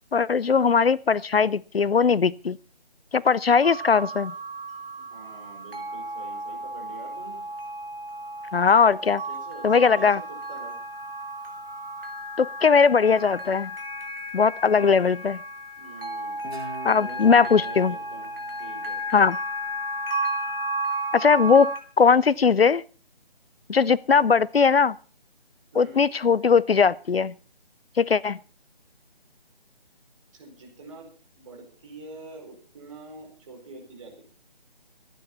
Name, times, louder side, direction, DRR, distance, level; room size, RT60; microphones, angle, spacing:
voice 1, 0.1-2.6 3.1-4.3 8.5-9.2 9.6-10.2 12.4-13.7 14.3-15.4 16.8-17.9 19.1-19.4 21.1-22.8 23.7-25.0 25.8-27.3 28.0-28.4, left 5 dB, 70° left, 0.6 m, -19 dB
sound 1, 3.6-21.8, right 1 dB, 65° right, 3.3 m, -34 dB
voice 2, 5.0-7.5 9.3-10.8 15.8-16.5 17.0-18.3 18.6-19.0 25.7-26.0 30.3-31.1 31.4-34.2, right 3 dB, 30° right, 4.7 m, -45 dB
Guitar, 16.4-19.7, right 2 dB, 85° right, 3.9 m, -44 dB
24.0 x 9.2 x 4.3 m
figure-of-eight pair, 155°, 30 cm